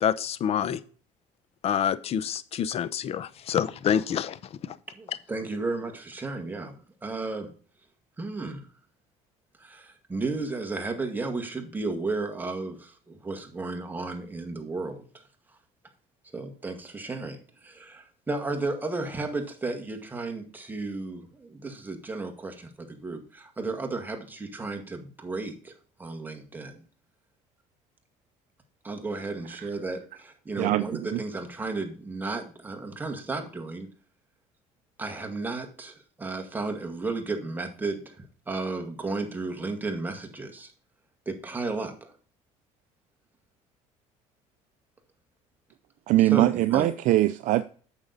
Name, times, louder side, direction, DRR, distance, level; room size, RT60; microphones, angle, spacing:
voice 1, 0.0-0.8 1.6-4.4 4.7-4.8, left 8 dB, 45° left, 0.7 m, -27 dB
voice 2, 5.0-7.5 8.2-8.7 9.6-15.0 16.3-25.7 26.0-26.8 28.8-33.9 35.0-40.7 41.3-42.1 46.3-46.9, right 3 dB, 15° right, 1.9 m, -33 dB
voice 3, 30.6-31.2 46.1-47.6, right 16 dB, 60° right, 0.5 m, -22 dB
8.9 x 6.5 x 4.1 m
cardioid pair, 120°, 14 cm